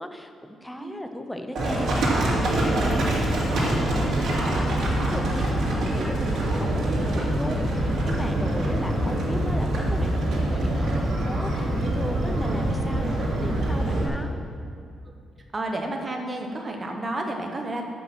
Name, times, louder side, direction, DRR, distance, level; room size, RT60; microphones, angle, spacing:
voice 1, 0.0-14.3, left 1 dB, 5° left, 6 dB, 0.6 m, -36 dB
Livestock farm animals working animals, 1.6-14.1, right 1 dB, 55° right, 2.1 m, -24 dB
voice 2, 15.5-17.9, right 1 dB, 20° right, 2 dB, 1.1 m, -31 dB
13.5 x 5.6 x 6.1 m, 2.3 s
cardioid pair, 165°, 0 cm